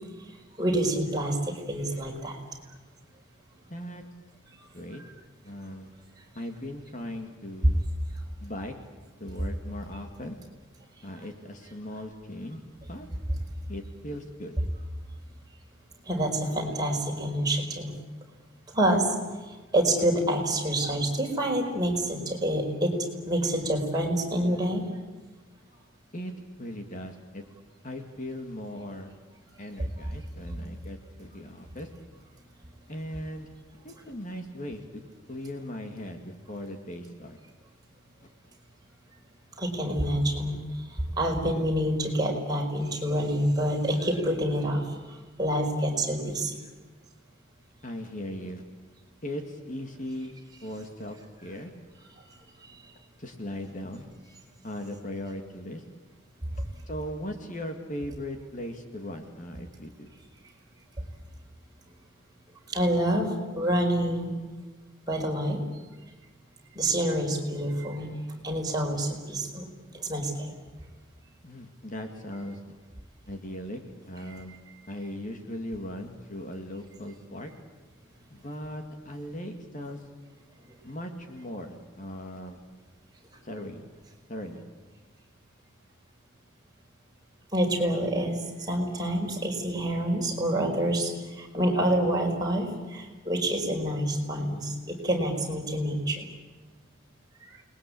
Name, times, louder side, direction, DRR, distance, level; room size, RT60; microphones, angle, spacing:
voice 1, 0.6-2.4 4.6-4.7 5.0-5.1 7.6-7.7 16.0-17.9 18.7-19.1 19.5-22.9 23.2-24.8 29.8-29.9 39.6-46.5 52.6-52.7 61.0-61.1 62.7-64.3 65.1-65.6 66.7-68.1 68.4-69.7 69.9-70.5 87.5-96.3 97.4-97.6, right 1 dB, 20° right, 0 dB, 4.9 m, -27 dB
voice 2, 3.7-4.0 4.7-5.0 5.4-5.9 6.4-7.8 8.4-8.7 9.2-10.4 11.0-12.6 12.9-13.1 13.7-14.5 26.1-26.3 26.6-27.4 27.8-29.1 29.6-31.9 32.9-33.5 33.8-35.0 35.3-37.4 47.8-48.6 49.2-51.7 53.2-54.1 54.6-55.8 56.9-60.1 71.4-72.8 73.3-74.6 74.9-77.5 78.3-80.0 80.8-82.6 83.4-83.9 84.3-84.7, left 1 dB, 40° left, 5 dB, 2.3 m, -38 dB
29.0 x 21.0 x 8.6 m, 1.3 s
head